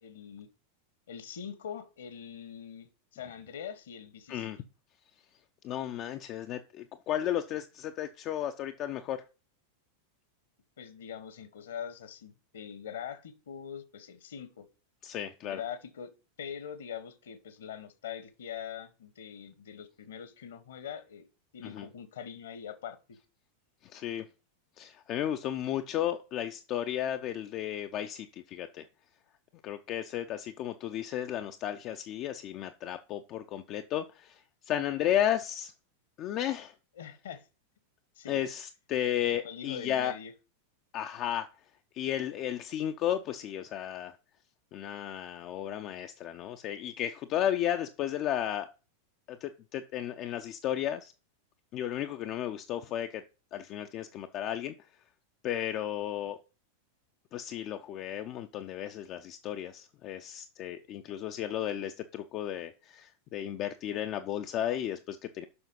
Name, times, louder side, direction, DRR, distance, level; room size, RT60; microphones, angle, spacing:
voice 1, 0.0-0.5 1.1-4.5 10.8-14.7 15.4-16.1 16.4-21.3 21.5-23.2 36.9-37.4 38.2-38.4 39.3-40.3 60.8-61.1, left 8 dB, 60° left, 1.3 m, -43 dB
voice 2, 5.6-9.2 15.0-15.6 21.6-21.9 23.9-24.2 24.8-28.9 29.6-34.4 34.7-35.7 36.2-36.7 38.3-40.1 40.9-41.5 41.9-44.1 44.7-48.7 49.3-51.1 51.7-53.2 53.5-54.7 55.4-56.4 57.3-65.5, left 11 dB, 35° left, 0.5 m, -34 dB
6.9 x 5.7 x 5.3 m
figure-of-eight pair, 90°, 0 cm